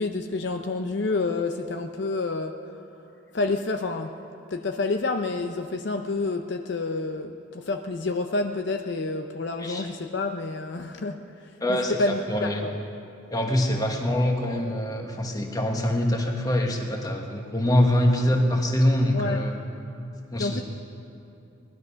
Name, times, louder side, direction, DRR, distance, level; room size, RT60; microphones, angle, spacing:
voice 1, 0.0-2.5 3.3-4.1 4.5-12.7 19.1-19.4 20.4-20.6, left 3 dB, 60° left, 5 dB, 0.6 m, -29 dB
voice 2, 11.6-12.0 12.3-12.6 13.3-19.6 20.3-20.6, left 1 dB, 20° left, 2 dB, 1.4 m, -24 dB
19.0 x 12.0 x 5.7 m, 2.8 s
head